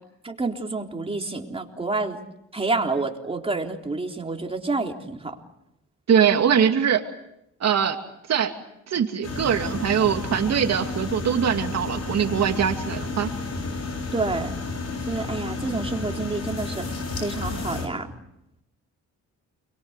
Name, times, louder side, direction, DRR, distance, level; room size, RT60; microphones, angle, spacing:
voice 1, 0.2-2.2 2.5-5.4 14.1-14.6 15.1-16.9 17.2-18.1, right 3 dB, 20° right, 2 dB, 3.8 m, -28 dB
voice 2, 6.1-7.0 7.6-8.0 8.3-8.5 8.9-13.3, right 8 dB, 60° right, 5 dB, 2.5 m, -22 dB
sound 1, 9.2-17.9, left 3 dB, 55° left, 6.6 m, -31 dB
29.5 x 23.0 x 8.3 m, 0.81 s
cardioid pair, 90°, 30 cm